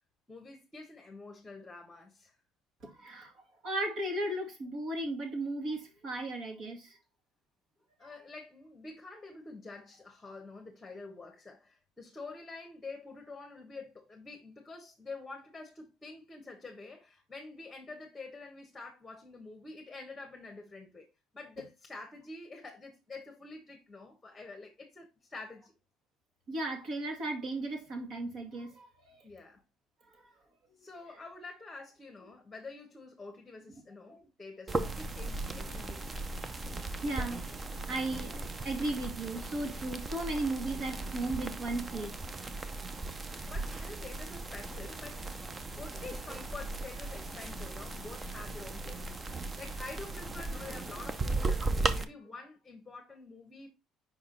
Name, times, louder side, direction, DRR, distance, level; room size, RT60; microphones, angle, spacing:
voice 1, 0.3-2.4 8.0-25.7 29.2-29.6 30.8-36.1 43.4-45.3 45.8-53.7, left 3 dB, 15° left, 1.2 m, -47 dB
voice 2, 2.8-3.3 3.6-6.9 26.5-29.2 34.1-34.2 36.4-42.1, right 2 dB, 55° right, 2.2 m, -36 dB
sound 1, 34.7-52.0, right 3 dB, 20° right, 0.6 m, -37 dB
5.2 x 4.8 x 3.9 m
cardioid pair, 135°, 0 cm